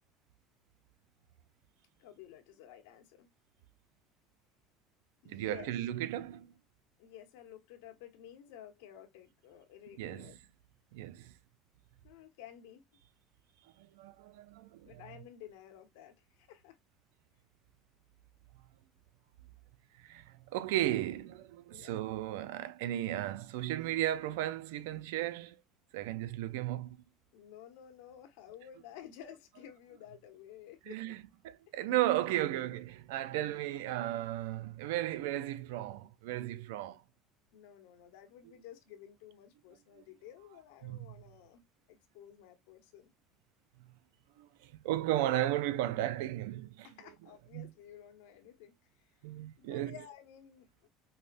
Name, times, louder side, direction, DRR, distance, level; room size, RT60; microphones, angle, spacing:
voice 1, 2.0-3.3 5.2-5.9 7.0-10.4 12.0-12.8 14.8-16.8 21.7-22.0 27.3-31.2 33.2-33.5 34.1-34.2 37.5-41.6 41.9-43.1 46.8-49.1 49.6-50.9, left 10 dB, 85° left, 1.2 m, -53 dB
voice 2, 5.3-6.5 10.0-10.4 10.9-11.3 13.8-15.0 20.0-25.6 25.9-27.0 30.9-37.0 40.8-41.1 44.4-46.9 47.5-47.7 49.2-50.0, right 13 dB, 90° right, 0.4 m, -35 dB
5.4 x 2.1 x 2.5 m
supercardioid pair, 115°, 0 cm